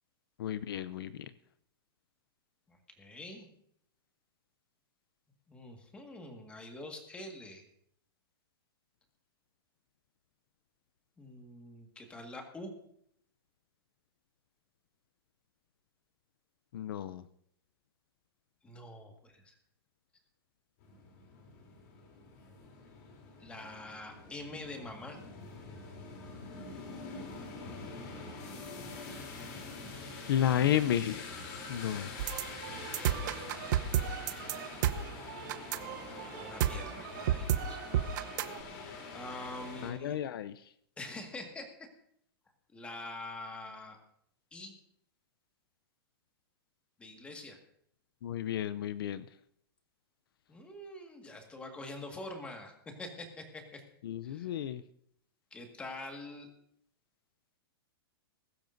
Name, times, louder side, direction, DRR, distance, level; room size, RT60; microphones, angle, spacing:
voice 1, 0.4-1.3 16.7-17.2 30.3-31.4 31.7-32.2 39.8-40.6 48.2-49.3 54.0-54.8, left 10 dB, 70° left, 15 dB, 0.6 m, -32 dB
voice 2, 2.7-3.5 5.5-7.6 11.2-12.7 18.6-19.5 23.4-25.2 36.0-37.8 38.3-38.6 39.1-40.2 41.0-41.7 42.7-44.0 44.5-44.7 47.0-47.6 50.5-53.8 54.2-54.6 55.5-56.5, left 2 dB, 10° left, 3 dB, 1.7 m, -45 dB
sound 1, 20.8-39.9, left 3 dB, 45° left, 3.3 m, -45 dB
sound 2, 32.2-38.6, right 10 dB, 50° right, 0.8 m, -32 dB
21.0 x 12.0 x 2.6 m, 0.70 s
supercardioid pair, 165°, 13 cm